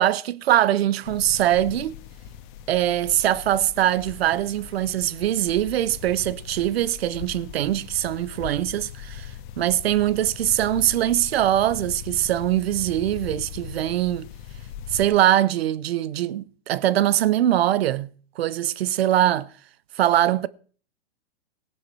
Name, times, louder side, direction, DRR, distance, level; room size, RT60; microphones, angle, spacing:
voice 1, 0.0-2.0 2.7-14.3 14.9-18.1 18.4-19.5 19.9-20.5, right 12 dB, 65° right, 0.9 m, -22 dB
sound 1, 1.0-15.1, left 9 dB, 50° left, 1.6 m, -40 dB
18.0 x 11.0 x 4.3 m
hypercardioid pair, 130°, 33 cm